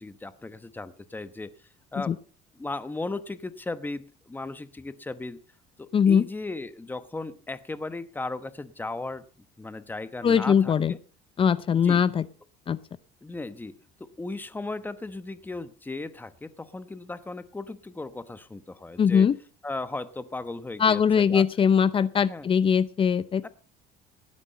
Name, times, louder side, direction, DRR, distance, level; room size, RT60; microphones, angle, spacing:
voice 1, 0.0-1.5 1.9-2.1 2.6-5.4 5.8-9.2 9.6-11.0 11.7-12.0 13.2-13.7 14.2-19.3 19.6-21.4 22.0-22.5 23.4-23.5, left 2 dB, 10° left, 13 dB, 1.1 m, -36 dB
voice 2, 5.9-6.2 10.2-10.9 11.4-12.2 12.7-12.8 19.0-19.3 20.8-23.5, left 7 dB, 30° left, 17 dB, 0.7 m, -21 dB
18.0 x 9.9 x 5.5 m, 0.39 s
cardioid pair, 130°, 18 cm